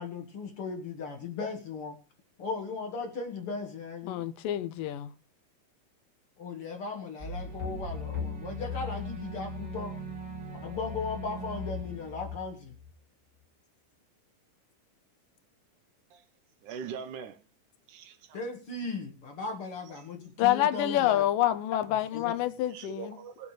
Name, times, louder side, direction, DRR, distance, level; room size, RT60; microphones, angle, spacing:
voice 1, 0.0-2.0 2.4-4.2 6.4-9.9 10.6-12.7 18.3-21.3 21.9-22.3, left 4 dB, 55° left, 1.8 m, -37 dB
voice 2, 4.1-5.1 20.4-23.2, left 13 dB, 80° left, 2.4 m, -27 dB
sound 1, 7.2-12.9, left 2 dB, 35° right, 2.9 m, -38 dB
voice 3, 16.6-17.4 17.9-18.4 19.9-20.0 22.4-23.5, right 6 dB, 70° right, 2.3 m, -42 dB
20.5 x 8.5 x 3.2 m
omnidirectional pair, 3.9 m